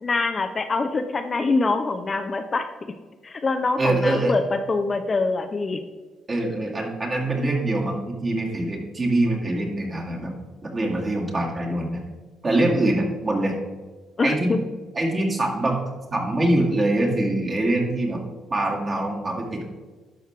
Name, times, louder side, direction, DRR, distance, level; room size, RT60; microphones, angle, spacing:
voice 1, 0.0-2.7 3.2-5.8 14.2-14.6, left 3 dB, 30° left, 7 dB, 0.5 m, -24 dB
voice 2, 3.8-4.3 6.3-10.3 10.6-12.0 12.4-13.6 14.2-14.5 14.9-15.8 16.1-18.2 18.5-19.6, right 1 dB, 30° right, -1 dB, 2.0 m, -24 dB
11.5 x 6.2 x 3.3 m, 1.3 s
cardioid pair, 120°, 0 cm